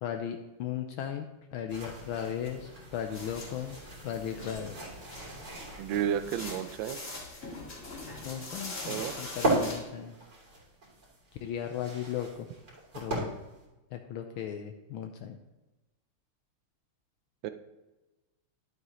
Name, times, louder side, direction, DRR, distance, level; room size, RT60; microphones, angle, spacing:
voice 1, 0.0-3.8 4.0-4.7 8.2-10.2 11.4-12.5 12.9-13.3 13.9-15.4, left 9 dB, 75° left, 5 dB, 1.4 m, -36 dB
sound 1, 1.7-6.6 7.6-13.6, right 1 dB, 45° right, 3.8 m, -37 dB
sound 2, 3.1-9.8, left 2 dB, 35° left, 2.4 m, -43 dB
voice 2, 5.8-7.0 8.9-9.2 17.4-17.5, right 9 dB, 70° right, 10 dB, 1.3 m, -31 dB
11.5 x 8.1 x 3.1 m, 1.1 s
omnidirectional pair, 2.4 m